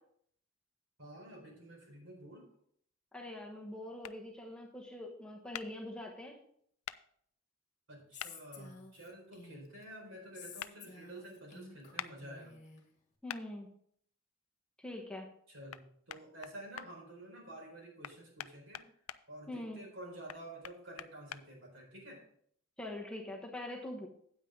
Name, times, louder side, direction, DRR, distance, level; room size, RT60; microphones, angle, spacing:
voice 1, 1.0-2.4 7.9-12.5 15.5-15.8 16.1-18.9 19.3-22.2, right 1 dB, 65° right, -1 dB, 4.5 m, -50 dB
voice 2, 3.1-6.4 13.2-13.7 14.8-15.3 19.5-19.8 22.8-24.1, left 1 dB, 5° left, -1 dB, 1.1 m, -43 dB
sound 1, 4.0-4.2 5.5-5.7 6.9-7.0 8.2-8.3 10.6-10.7 12.0-12.1 13.3-13.4 15.7-15.8 16.1-16.9 18.0-19.2 20.3-21.4, left 11 dB, 90° left, 0.4 m, -43 dB
Female speech woman speaking, 8.1-9.8 10.3-12.8, left 4 dB, 35° left, 1.7 m, -52 dB
9.1 x 8.8 x 3.7 m, 0.65 s
head